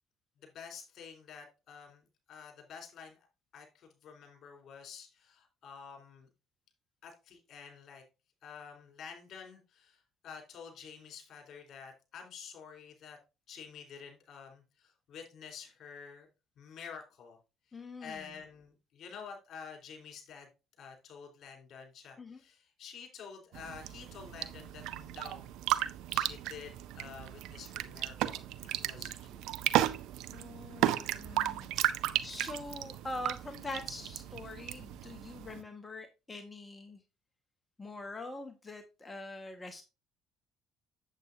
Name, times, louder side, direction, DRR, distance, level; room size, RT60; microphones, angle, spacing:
voice 1, 0.4-3.3 3.5-6.3 7.0-8.0 8.4-13.2 13.5-16.3 16.6-17.4 17.7-20.5 20.8-25.5 26.1-28.4 28.8-29.4 32.0-32.1, left 6 dB, 55° left, 2 dB, 4.2 m, -49 dB
voice 2, 17.7-18.4 22.2-22.4 30.3-37.0 37.8-39.8, left 2 dB, 25° left, 6 dB, 1.5 m, -44 dB
sound 1, 23.5-35.6, right 13 dB, 70° right, 0.6 m, -35 dB
8.1 x 8.0 x 2.7 m, 0.28 s
hypercardioid pair, 60°, 0 cm